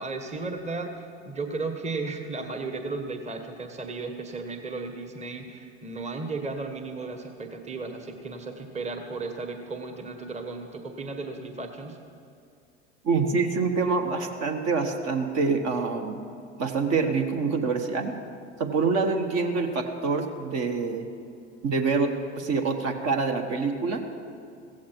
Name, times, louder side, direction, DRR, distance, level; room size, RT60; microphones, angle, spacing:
voice 1, 0.0-12.0, right 3 dB, 20° right, 6 dB, 1.3 m, -35 dB
voice 2, 13.0-16.2 16.6-18.1 18.6-21.1 21.6-24.0, right 4 dB, 45° right, 5 dB, 1.5 m, -26 dB
16.0 x 15.5 x 4.6 m, 2.4 s
hypercardioid pair, 80°, 36 cm